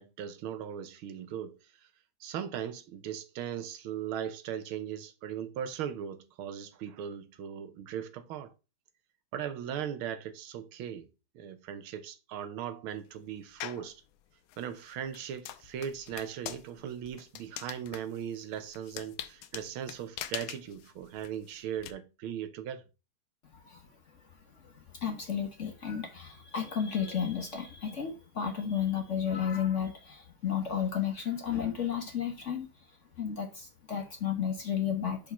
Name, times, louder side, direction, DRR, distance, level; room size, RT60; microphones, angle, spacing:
voice 1, 0.0-1.9 2.2-8.5 9.3-11.1 11.3-14.0 14.6-22.9, right 9 dB, 85° right, 1.7 m, -38 dB
sound 1, 13.6-13.9 14.5-21.9, left 11 dB, 85° left, 1.5 m, -43 dB
voice 2, 23.5-23.9 24.6-32.7 33.2-35.3, left 8 dB, 45° left, 1.1 m, -33 dB
5.2 x 5.1 x 5.5 m
omnidirectional pair, 2.3 m